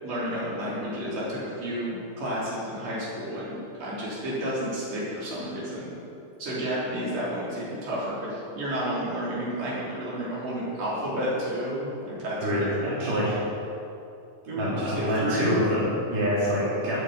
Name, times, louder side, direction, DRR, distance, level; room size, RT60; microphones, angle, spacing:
voice 1, 0.0-5.9 6.4-11.9 12.2-12.9 14.4-15.6, equal, 50° right, -8 dB, 5.0 m, -31 dB
voice 2, 12.4-13.4 14.6-17.0, equal, 75° right, -8 dB, 4.9 m, -26 dB
10.5 x 9.3 x 8.8 m, 2.7 s
omnidirectional pair, 3.7 m